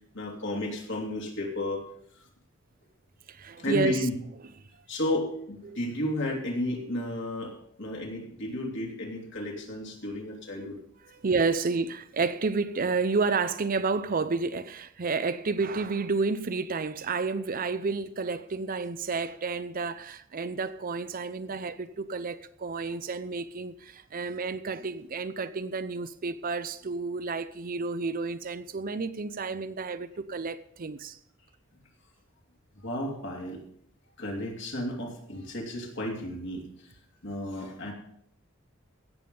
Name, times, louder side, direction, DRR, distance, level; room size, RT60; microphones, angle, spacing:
voice 1, 0.1-1.9 3.6-4.1 4.9-10.8 32.7-33.6 34.2-36.9 37.2-37.9, left 1 dB, 60° left, 3.0 m, -33 dB
voice 2, 3.3-4.1 5.6-5.8 11.1-31.2, right 4 dB, 45° right, 0.6 m, -30 dB
16.5 x 7.1 x 5.4 m
head